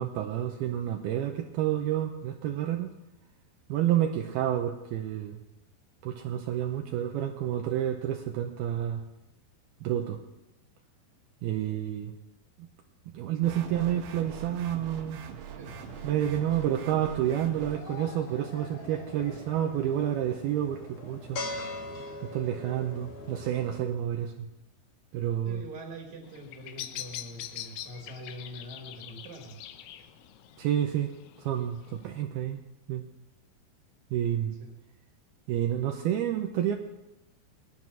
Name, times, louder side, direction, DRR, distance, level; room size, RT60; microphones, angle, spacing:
voice 1, 0.0-2.9 3.7-5.4 6.0-9.0 9.8-10.2 11.4-12.1 12.6-12.7 13.1-15.2 16.0-21.4 22.2-24.5 25.1-25.6 30.6-31.1 31.4-32.6 32.9-33.1 34.1-34.6 35.5-36.8, right 11 dB, 85° right, 3 dB, 2.2 m, -29 dB
sound 1, 13.4-17.8, right 7 dB, 70° right, 2.9 m, -43 dB
sound 2, 15.7-23.8, left 2 dB, 50° left, 2.1 m, -42 dB
voice 2, 25.4-29.6 34.6-34.7, right 1 dB, 50° right, 1 dB, 2.5 m, -44 dB
Bird vocalization bird call bird song, 26.2-32.2, left 12 dB, 80° left, 2.3 m, -44 dB
19.5 x 11.5 x 6.1 m, 0.98 s
omnidirectional pair, 5.5 m